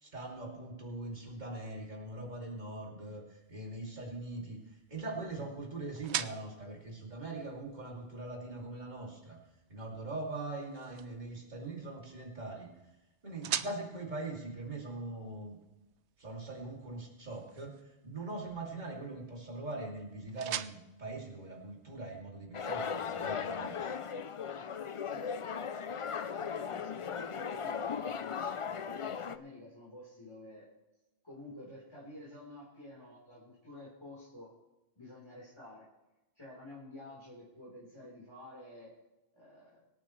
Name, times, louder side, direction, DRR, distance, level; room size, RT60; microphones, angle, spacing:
voice 1, 0.0-4.6 4.9-9.4 9.7-12.7 13.2-15.6 16.2-17.8 18.0-24.0, right 2 dB, 40° right, -1 dB, 2.9 m, -42 dB
sound 1, 3.4-22.2, right 10 dB, 85° right, 0.9 m, -46 dB
sound 2, 22.5-29.4, left 6 dB, 50° left, 0.4 m, -37 dB
voice 2, 25.0-25.8 26.3-30.7 31.2-34.5 35.0-35.9 36.3-38.9 39.3-39.8, left 1 dB, 25° left, -7 dB, 3.8 m, -51 dB
25.0 x 9.0 x 3.2 m, 1.0 s
omnidirectional pair, 1.1 m